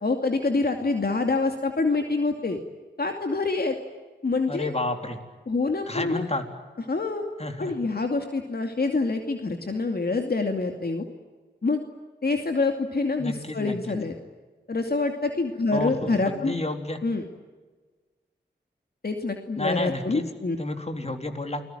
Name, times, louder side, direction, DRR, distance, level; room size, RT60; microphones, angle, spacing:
voice 1, 0.0-2.6 3.0-3.8 4.2-4.7 5.5-6.3 6.9-7.2 7.6-11.0 11.6-11.8 12.2-14.1 14.7-16.5 17.0-17.2 19.0-20.6, left 3 dB, 60° left, 4 dB, 2.6 m, -26 dB
voice 2, 4.5-5.2 5.9-6.4 7.4-7.7 13.2-13.8 15.7-17.0 19.6-20.2 20.6-21.6, left 2 dB, 35° left, 5 dB, 3.9 m, -31 dB
29.5 x 20.5 x 9.3 m, 1.4 s
cardioid pair, 55°, 18 cm